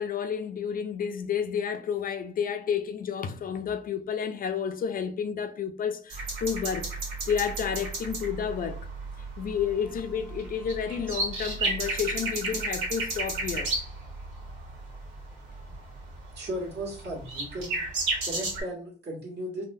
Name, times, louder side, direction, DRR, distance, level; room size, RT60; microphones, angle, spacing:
voice 1, 0.0-8.9 9.4-13.7, left 7 dB, 45° left, 0.4 m, -31 dB
sound 1, 6.1-18.6, right 2 dB, 90° right, 1.2 m, -33 dB
voice 2, 16.3-17.8 18.2-19.6, right 1 dB, 60° right, 1.5 m, -36 dB
3.6 x 2.1 x 2.6 m
cardioid pair, 90°, 20 cm